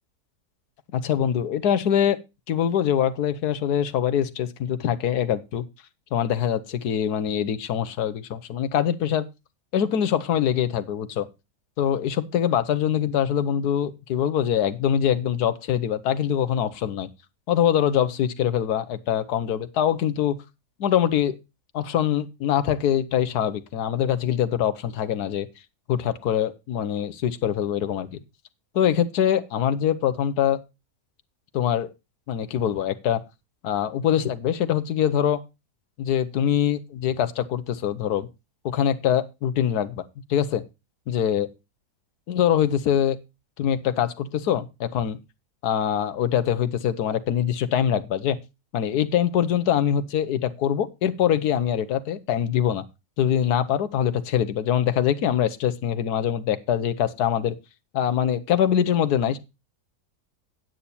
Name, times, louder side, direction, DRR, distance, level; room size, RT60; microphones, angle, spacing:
voice 1, 0.9-2.2 2.5-5.6 6.1-9.2 9.7-11.3 11.8-17.1 17.5-20.3 20.8-21.4 21.7-25.5 25.9-28.1 28.7-30.6 31.5-31.9 32.3-33.2 33.6-35.4 36.0-38.3 38.6-40.0 40.3-40.6 41.1-41.5 42.3-43.2 43.6-45.2 45.6-48.4 48.7-52.8 53.2-57.5 57.9-59.4, left 9 dB, 75° left, 1.4 m, -23 dB
9.2 x 8.5 x 4.2 m
omnidirectional pair, 1.7 m